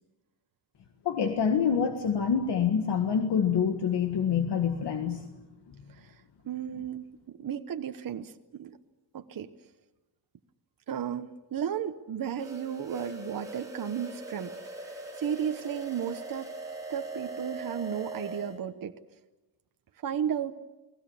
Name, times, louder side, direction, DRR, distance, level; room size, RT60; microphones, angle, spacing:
voice 1, 1.0-5.3, left 7 dB, 60° left, 5 dB, 1.8 m, -26 dB
voice 2, 6.4-8.7 9.1-9.5 10.9-14.5 14.8-16.5 16.9-18.9 20.0-20.5, right 9 dB, 45° right, 7 dB, 1.1 m, -34 dB
sound 1, 12.4-18.6, right 2 dB, 5° right, 5.1 m, -41 dB
30.0 x 19.5 x 7.2 m, 1.1 s
wide cardioid pair, 160°, 47 cm